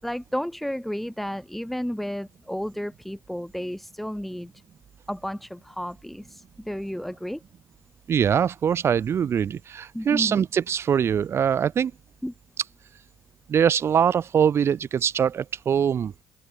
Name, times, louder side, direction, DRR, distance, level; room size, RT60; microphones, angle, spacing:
voice 1, 0.0-4.5 5.1-7.4 9.9-10.4 12.2-12.3, equal, 5° left, 4.5 m, -32 dB
voice 2, 8.1-11.9 13.5-16.1, right 8 dB, 45° right, 1.1 m, -23 dB
open air
hypercardioid pair, 60°, 6 cm